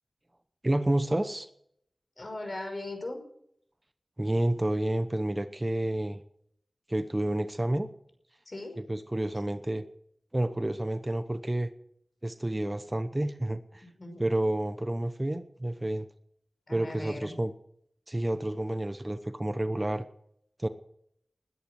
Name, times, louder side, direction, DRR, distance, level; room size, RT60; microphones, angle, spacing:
voice 1, 0.6-1.5 4.2-6.2 6.9-7.9 8.9-9.8 10.3-11.7 12.2-13.8 14.2-16.1 16.7-17.5 18.1-20.0 20.6-20.7, right 1 dB, 20° right, 10 dB, 0.9 m, -29 dB
voice 2, 2.2-3.2 8.5-8.8 14.0-14.2 16.7-17.3, left 2 dB, 45° left, 5 dB, 5.5 m, -38 dB
20.5 x 10.5 x 6.4 m, 0.70 s
wide cardioid pair, 80°, 0 cm